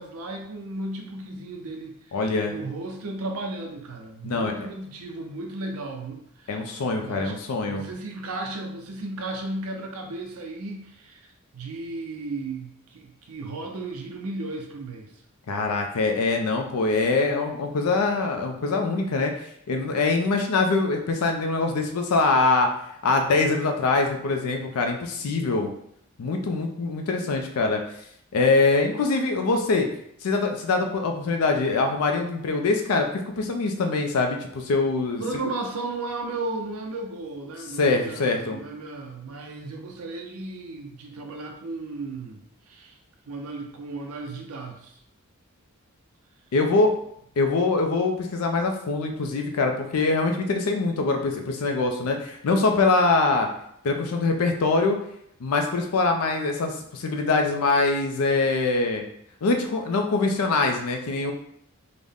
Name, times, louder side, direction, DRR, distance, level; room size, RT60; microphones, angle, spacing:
voice 1, 0.0-2.2 2.5-6.6 7.0-7.4 7.6-15.2 35.2-43.0 43.3-45.0, right 2 dB, 80° right, 2 dB, 0.5 m, -35 dB
voice 2, 2.1-2.5 4.2-4.5 6.5-7.8 15.5-19.3 19.7-22.7 23.0-25.7 26.2-27.8 28.3-29.9 30.2-35.2 37.8-38.6 46.5-46.9 47.4-53.5 53.8-55.0 55.4-59.0 59.4-61.3, left 3 dB, 85° left, 4 dB, 0.4 m, -23 dB
3.7 x 2.1 x 3.5 m, 0.70 s
head